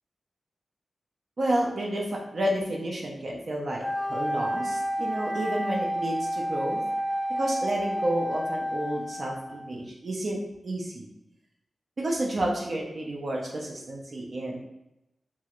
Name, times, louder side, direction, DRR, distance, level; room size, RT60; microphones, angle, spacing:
voice 1, 1.4-3.8 4.1-6.8 7.4-10.4 10.6-11.1 12.0-14.6, right 1 dB, 50° right, -2 dB, 0.5 m, -30 dB
Wind instrument woodwind instrument, 3.8-9.7, equal, 10° left, 0.3 m, -30 dB
3.0 x 2.4 x 2.9 m, 0.88 s
wide cardioid pair, 140°, 0 cm